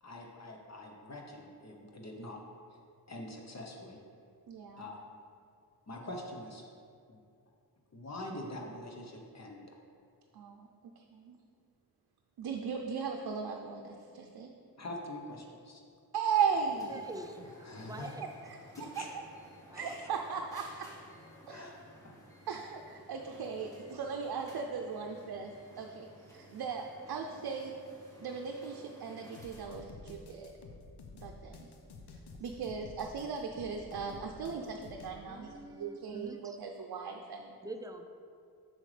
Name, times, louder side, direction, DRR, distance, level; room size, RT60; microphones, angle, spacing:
voice 1, 0.0-2.4 3.1-4.0 4.8-4.9 5.9-6.7 7.1-7.2 7.9-9.8 14.8-15.8 17.4-18.1 19.0-19.1 19.7-20.1 21.5-21.8 22.0-22.1, left 1 dB, 45° left, 0 dB, 0.9 m, -44 dB
voice 2, 4.5-4.9 10.3-10.7 11.0-11.4 12.4-14.5 16.1-17.0 18.4-19.2 19.7-20.9 21.5-21.7 22.5-25.5 25.8-27.7 28.2-30.5 31.1-31.7 32.4-37.5, right 6 dB, 65° right, 2 dB, 0.6 m, -37 dB
sound 1, 16.5-29.7, equal, 10° left, 1.4 m, -56 dB
voice 3, 16.9-18.3 19.7-19.9 35.3-36.6 37.6-38.0, right 2 dB, 10° right, 6 dB, 0.4 m, -46 dB
sound 2, 29.3-35.2, left 3 dB, 80° left, 0.8 m, -51 dB
7.7 x 6.3 x 3.3 m, 2.4 s
wide cardioid pair, 115°, 39 cm